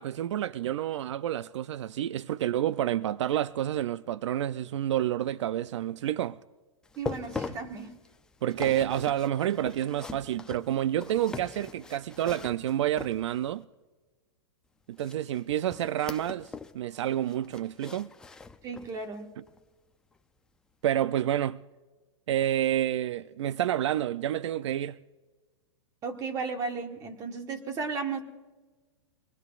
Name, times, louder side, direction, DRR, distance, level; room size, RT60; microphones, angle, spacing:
voice 1, 0.0-6.4 8.4-13.6 14.9-18.1 20.8-21.6 22.3-25.0, right 12 dB, 70° right, 0.4 m, -29 dB
sound 1, 6.8-13.6 15.0-16.8 17.1-19.0 19.5-19.6 20.2-20.3, left 4 dB, 5° left, 0.4 m, -42 dB
voice 2, 7.0-7.9 18.6-19.3 26.0-28.2, right 4 dB, 20° right, 1.5 m, -34 dB
23.5 x 20.5 x 2.4 m
hypercardioid pair, 155°, 15 cm